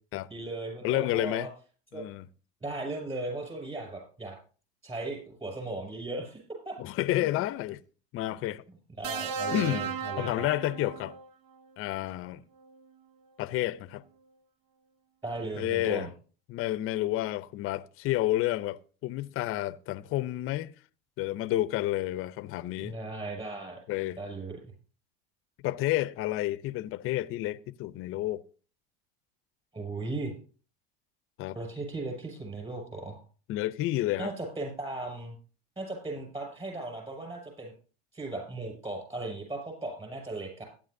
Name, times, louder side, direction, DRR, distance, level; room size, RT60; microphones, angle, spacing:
voice 1, 0.3-1.5 1.9-2.1 2.6-4.4 4.8-6.4 6.6-6.8 7.3-7.4 9.0-10.3 15.2-16.1 22.8-23.8 24.2-24.6 29.7-30.3 31.5-33.2 34.2-35.4 35.8-37.7 38.1-40.7, right 2 dB, 20° right, 6.2 m, -37 dB
voice 2, 0.8-1.5 1.9-2.3 6.8-7.8 8.1-8.6 9.5-11.1 11.8-12.4 13.4-14.0 15.6-16.1 16.5-18.8 19.0-20.7 21.2-22.9 23.9-24.2 25.6-28.4 31.4-31.6 33.5-34.3, left 15 dB, 45° left, 0.6 m, -30 dB
sound 1, 9.0-11.3 12.6-12.8, right 6 dB, 65° right, 1.0 m, -35 dB
16.0 x 10.0 x 2.6 m
supercardioid pair, 100°, 30 cm